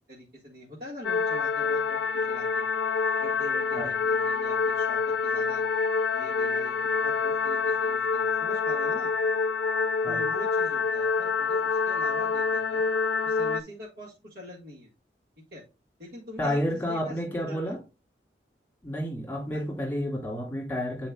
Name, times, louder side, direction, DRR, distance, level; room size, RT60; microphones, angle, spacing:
voice 1, 0.0-2.7 3.2-5.6 6.1-9.1 10.1-12.9 13.2-14.9 15.5-15.6 16.0-17.8 19.5-19.6, left 1 dB, 65° right, -6 dB, 1.8 m, -44 dB
sound 1, 1.0-13.6, left 5 dB, 85° left, 0.5 m, -27 dB
voice 2, 16.4-17.8 18.8-21.1, equal, 10° left, -2 dB, 2.0 m, -30 dB
9.7 x 4.4 x 2.3 m, 0.30 s
head